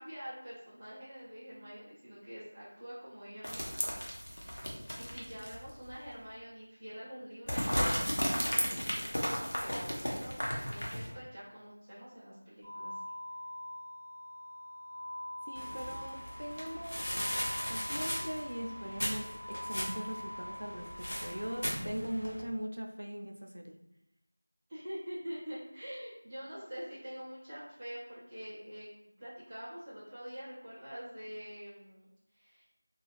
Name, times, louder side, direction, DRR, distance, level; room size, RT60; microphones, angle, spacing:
voice 1, 0.0-4.4 5.0-13.0 21.1-21.4 24.7-28.9 29.2-32.7, equal, 5° right, -15 dB, 0.5 m, -46 dB
sound 1, 3.4-5.7 6.1-6.2 7.5-11.1, equal, 90° left, 0.8 m, -34 dB
sound 2, 12.6-21.7, left 1 dB, 20° left, 0.9 m, -44 dB
voice 2, 15.5-17.4 17.7-23.8, equal, 80° right, 4 dB, 0.4 m, -40 dB
sound 3, 15.6-22.4, equal, 60° left, 0.7 m, -39 dB
2.4 x 2.3 x 3.2 m, 0.87 s
figure-of-eight pair, 180°, 0 cm